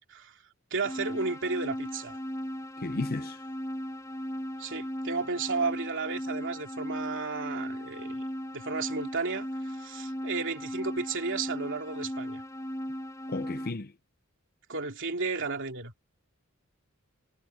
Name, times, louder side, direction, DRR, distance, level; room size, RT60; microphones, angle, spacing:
voice 1, 0.7-2.2 4.6-8.2 8.5-12.4 14.7-16.0, right 4 dB, 60° right, 3.0 m, -33 dB
sound 1, 0.8-13.7, equal, 15° left, 1.5 m, -37 dB
voice 2, 2.8-3.4 13.3-13.9, left 2 dB, 45° left, 0.8 m, -34 dB
head